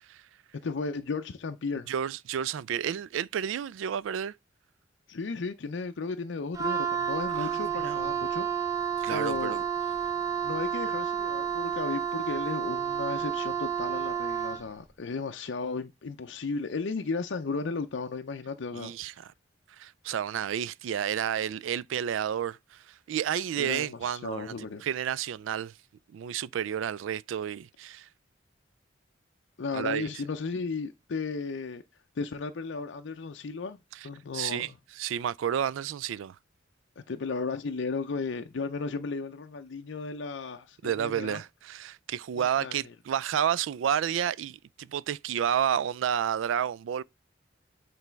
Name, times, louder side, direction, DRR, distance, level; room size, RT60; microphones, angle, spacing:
voice 1, 0.6-1.9 5.1-8.5 9.1-9.6 10.4-18.9 23.6-24.8 29.6-31.8 32.2-33.8 34.0-34.8 37.1-41.4 42.4-42.8, left 4 dB, 70° left, 0.5 m, -34 dB
voice 2, 1.9-4.3 7.3-8.1 9.0-9.6 18.8-19.1 19.8-25.7 26.1-28.1 29.7-30.1 33.9-34.1 34.3-34.7 35.0-36.4 40.8-47.0, right 9 dB, 85° right, 0.3 m, -31 dB
Wind instrument woodwind instrument, 6.5-14.7, right 8 dB, 15° right, 0.6 m, -30 dB
8.2 x 3.3 x 4.5 m
head